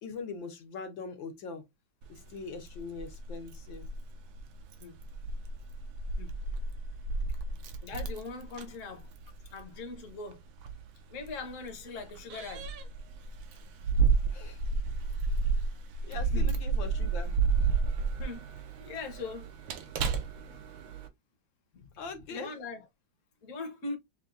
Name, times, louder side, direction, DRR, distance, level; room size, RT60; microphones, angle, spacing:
voice 1, 0.0-1.6 2.1-3.8 14.3-14.6 16.0-17.7 20.5-20.6 22.0-22.6, left 4 dB, 75° left, 1.8 m, -42 dB
Keys jangling, 2.0-21.1, right 4 dB, 85° right, 1.5 m, -32 dB
voice 2, 7.8-9.1 9.5-10.4 11.1-12.7 16.1-16.5 18.2-18.5 18.8-19.5 21.7-21.9 22.3-22.8 23.4-24.0, left 3 dB, 50° left, 1.2 m, -41 dB
6.7 x 2.3 x 2.6 m
omnidirectional pair, 2.1 m